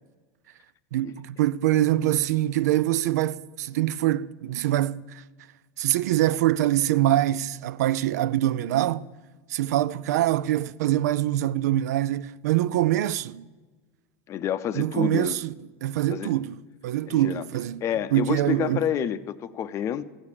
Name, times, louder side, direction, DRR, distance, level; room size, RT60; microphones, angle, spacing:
voice 1, 0.9-5.2 5.8-9.1 9.5-13.5 14.7-15.5 15.8-16.6 16.8-17.8 18.1-18.9, right 13 dB, 85° right, 0.4 m, -24 dB
voice 2, 14.3-15.4 16.1-16.3 17.1-17.4 17.8-20.0, left 10 dB, 35° left, 0.6 m, -29 dB
15.0 x 6.5 x 8.8 m
supercardioid pair, 130°, 9 cm